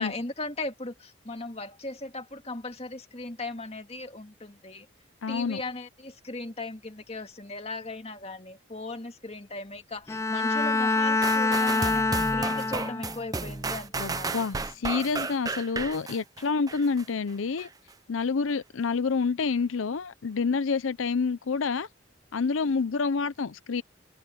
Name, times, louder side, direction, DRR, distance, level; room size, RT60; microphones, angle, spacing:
voice 1, 0.0-4.9 5.3-14.5, left 2 dB, 30° left, 2.0 m, -38 dB
voice 2, 5.2-5.6 14.0-17.7 18.1-21.9 22.3-23.8, left 4 dB, 90° left, 0.6 m, -28 dB
Bowed string instrument, 10.1-13.3, left 3 dB, 15° left, 0.3 m, -25 dB
sound 1, 11.2-17.1 17.6-17.7, right 3 dB, 20° right, 0.7 m, -33 dB
head